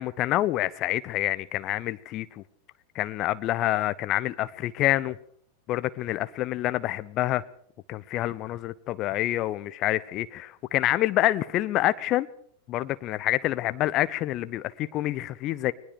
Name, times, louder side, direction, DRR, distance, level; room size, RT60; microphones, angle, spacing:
voice 1, 0.0-2.4 2.9-5.2 5.7-7.4 7.9-12.3 12.7-15.7, left 15 dB, 35° left, 0.9 m, -27 dB
21.0 x 20.0 x 6.6 m
figure-of-eight pair, 90°, 0 cm